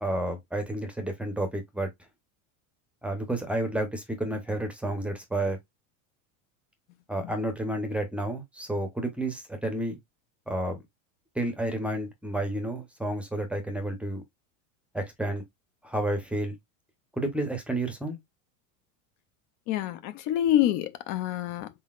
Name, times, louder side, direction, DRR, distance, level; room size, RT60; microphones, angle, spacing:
voice 1, 0.0-1.9 3.0-5.6 7.1-10.0 10.5-10.8 11.4-14.2 14.9-15.4 15.8-16.6 17.2-18.2, right 1 dB, 5° right, 0.6 m, -30 dB
voice 2, 19.7-21.7, left 12 dB, 45° left, 0.5 m, -26 dB
4.1 x 3.9 x 2.3 m
supercardioid pair, 160°, 39 cm